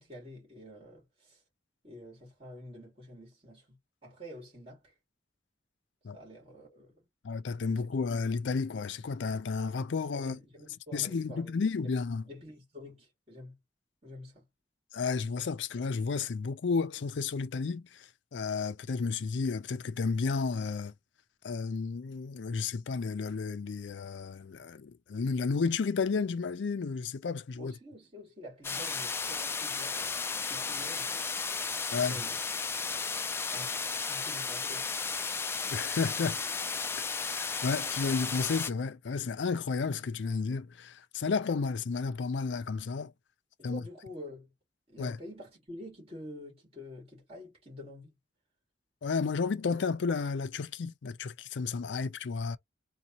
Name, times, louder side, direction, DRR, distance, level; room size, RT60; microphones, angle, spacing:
voice 1, 0.0-1.4 1.8-4.9 6.1-7.1 10.1-11.5 11.8-11.9 12.2-13.6 14.0-14.5 27.6-30.2 30.4-31.3 31.9-32.4 33.3-33.8 34.1-34.9 43.6-44.5 44.9-48.2, left 1 dB, 35° right, 2.3 m, -48 dB
voice 2, 7.2-10.4 10.9-12.2 14.9-20.9 21.4-27.7 31.9-32.2 35.7-36.4 37.2-43.1 43.6-43.8 45.0-45.2 49.0-52.6, left 4 dB, 90° left, 0.5 m, -32 dB
sound 1, 28.6-38.7, left 5 dB, 15° left, 0.3 m, -34 dB
3.9 x 2.3 x 2.8 m
head